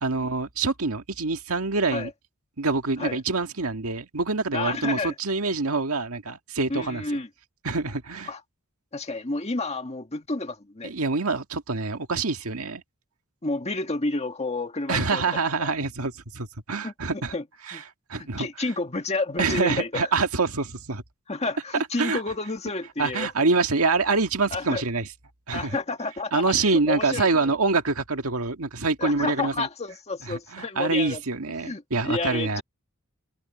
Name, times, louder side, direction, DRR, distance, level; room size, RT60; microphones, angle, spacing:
voice 1, 0.0-2.1 2.6-7.0 7.6-8.3 10.8-12.8 14.9-17.3 17.7-17.8 18.1-18.5 19.4-21.0 22.0-22.2 23.0-25.1 25.5-25.8 26.3-29.7 30.2-32.6, right 3 dB, 80° right, 1.8 m, -26 dB
voice 2, 4.5-5.1 6.7-7.3 8.3-8.4 8.9-10.9 13.4-15.2 15.6-15.7 16.8-17.4 17.7-17.8 18.2-20.1 21.3-23.3 24.5-24.8 25.5-27.5 29.0-31.2 31.6-32.6, left 3 dB, 30° left, 1.7 m, -30 dB
head